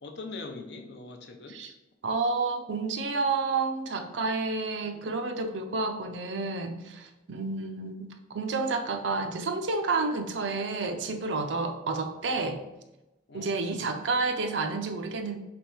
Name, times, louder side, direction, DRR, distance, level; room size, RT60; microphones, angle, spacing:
voice 1, 0.0-1.6 13.3-13.8, left 3 dB, 65° left, 3 dB, 0.6 m, -42 dB
voice 2, 2.0-12.6 13.3-15.4, right 3 dB, 80° right, 5 dB, 0.5 m, -30 dB
3.4 x 3.0 x 4.5 m, 1.0 s
head